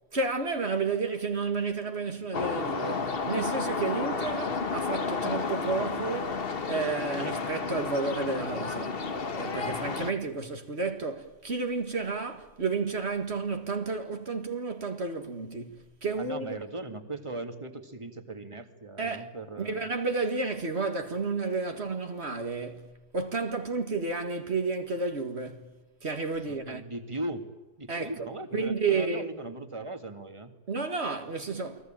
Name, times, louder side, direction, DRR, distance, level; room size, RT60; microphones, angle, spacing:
voice 1, 0.1-6.4 6.7-9.0 9.4-16.6 19.0-19.3 19.6-25.7 26.0-26.8 27.9-29.3 30.7-31.9, right 4 dB, 60° right, 2.1 m, -31 dB
sound 1, 2.3-10.1, left 4 dB, 50° left, 1.5 m, -32 dB
voice 2, 16.2-19.9 26.5-27.4 27.8-30.5, right 2 dB, 25° right, 2.2 m, -39 dB
29.0 x 21.0 x 8.9 m
omnidirectional pair, 1.2 m